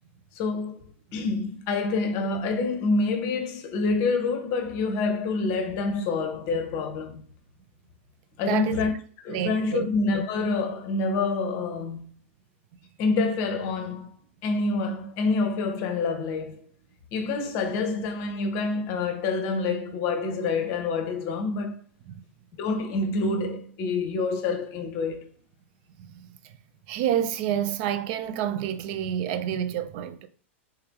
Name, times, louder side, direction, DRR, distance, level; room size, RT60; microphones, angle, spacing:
voice 1, 0.3-0.8 1.1-7.2 8.4-8.9 9.2-12.0 13.0-14.1 14.4-16.6 17.1-21.8 22.6-25.3, left 3 dB, 45° left, 0.7 m, -27 dB
voice 2, 8.5-8.8 9.3-9.9 22.1-22.2 26.1-26.3 26.9-30.3, right 10 dB, 50° right, 0.4 m, -28 dB
3.4 x 2.9 x 3.5 m
hypercardioid pair, 100°, 7 cm